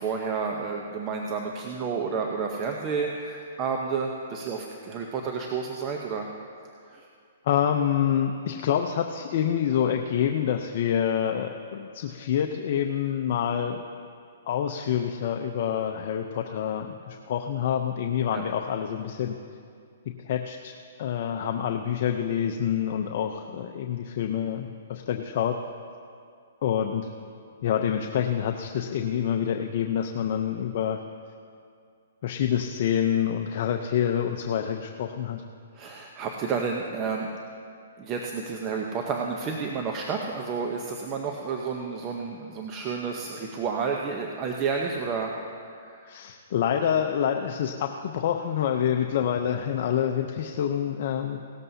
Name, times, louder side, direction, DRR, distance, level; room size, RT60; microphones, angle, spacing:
voice 1, 0.0-6.3 6.9-7.1 18.3-18.4 35.7-37.3 38.0-46.1, right 5 dB, 25° right, 1 dB, 0.9 m, -31 dB
voice 2, 7.4-13.8 14.5-19.4 20.2-20.7 21.0-25.6 26.6-27.1 27.6-31.0 32.2-35.4 46.1-51.4, left 9 dB, 50° left, 4 dB, 0.7 m, -27 dB
18.0 x 13.5 x 2.8 m, 2.3 s
hypercardioid pair, 145°, 0 cm